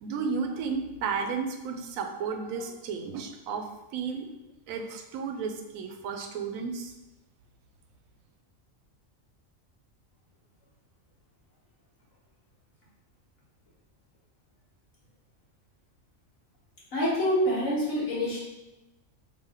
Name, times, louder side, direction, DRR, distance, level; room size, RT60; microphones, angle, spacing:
voice 1, 0.0-3.7 3.9-4.3 4.7-6.9, right 5 dB, 85° right, 5 dB, 1.0 m, -33 dB
voice 2, 16.9-18.4, equal, 70° left, -6 dB, 1.7 m, -26 dB
3.8 x 2.7 x 4.3 m, 1.0 s
omnidirectional pair, 1.4 m